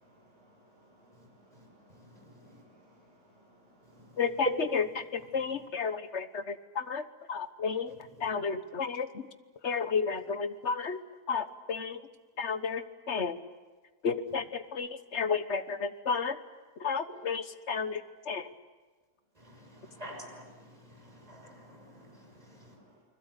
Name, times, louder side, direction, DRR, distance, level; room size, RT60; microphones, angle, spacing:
voice 1, 0.0-4.3 19.7-20.0 21.0-23.0, equal, 50° right, -3 dB, 6.4 m, -62 dB
voice 2, 1.1-2.6 3.8-4.5 4.9-5.7 7.9-8.3 19.3-22.8, right 1 dB, 25° right, 2 dB, 6.3 m, -44 dB
voice 3, 5.0-7.9 8.2-9.3 9.6-11.0 11.3-12.0 12.4-13.4 14.0-16.4 16.8-18.5, left 5 dB, 50° left, 11 dB, 1.4 m, -32 dB
29.5 x 21.0 x 8.2 m, 1.3 s
omnidirectional pair, 1.6 m